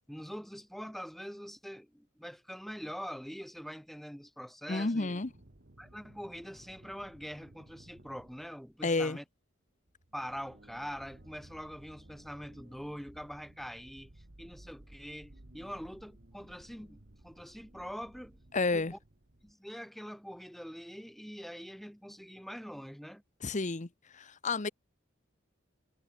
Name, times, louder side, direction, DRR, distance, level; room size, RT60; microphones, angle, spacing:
voice 1, 0.1-5.1 5.8-9.2 10.1-14.1 14.4-18.4 18.7-19.0 19.4-23.2, equal, ahead, 4.4 m, -44 dB
voice 2, 4.7-5.3 8.8-9.2 18.5-18.9 23.4-23.9 24.1-24.7, left 3 dB, 40° left, 1.0 m, -30 dB
sound 1, 5.2-8.9 9.9-19.5, right 1 dB, 50° right, 1.8 m, -57 dB
head